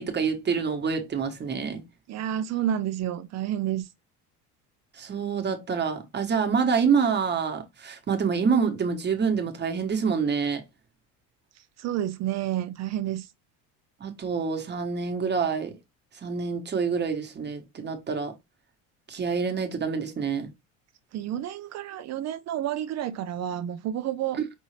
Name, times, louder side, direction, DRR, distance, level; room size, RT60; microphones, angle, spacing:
voice 1, 0.0-1.8 4.9-10.6 14.0-15.8 16.2-18.3 19.1-20.5, right 6 dB, 30° right, 1.2 m, -27 dB
voice 2, 2.1-3.9 11.8-13.3 21.1-24.4, right 11 dB, 50° right, 0.5 m, -30 dB
5.4 x 2.6 x 3.2 m
cardioid pair, 120°, 36 cm